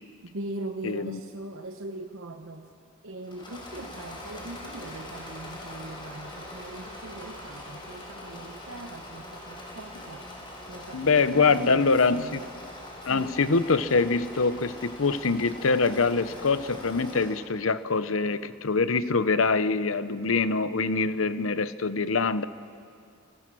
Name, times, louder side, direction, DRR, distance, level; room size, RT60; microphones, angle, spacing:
voice 1, 0.2-2.7 3.0-10.3 10.6-12.4 13.0-13.4, right 2 dB, 75° right, 5 dB, 1.0 m, -40 dB
voice 2, 0.8-1.2 10.9-12.4 13.1-22.5, left 4 dB, 85° left, 13 dB, 0.9 m, -24 dB
Engine / Mechanisms, 3.2-17.5, left 1 dB, 25° left, 5.6 m, -42 dB
29.5 x 20.5 x 6.2 m, 2.3 s
head